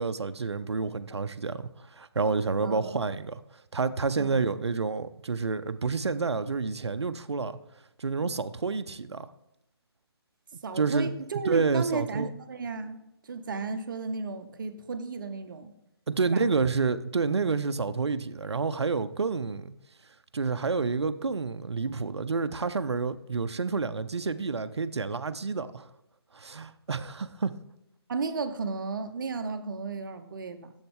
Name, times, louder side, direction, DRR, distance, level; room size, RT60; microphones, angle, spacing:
voice 1, 0.0-3.4 3.7-7.6 8.0-9.3 10.8-11.1 11.5-12.3 16.1-19.7 20.3-25.9 26.3-27.6, right 4 dB, 85° right, 0.5 m, -29 dB
voice 2, 2.6-3.0 4.2-4.4 10.6-15.7 16.3-16.5 28.1-30.7, right 4 dB, 50° right, 0.7 m, -34 dB
7.6 x 7.1 x 3.5 m
figure-of-eight pair, 145°, 14 cm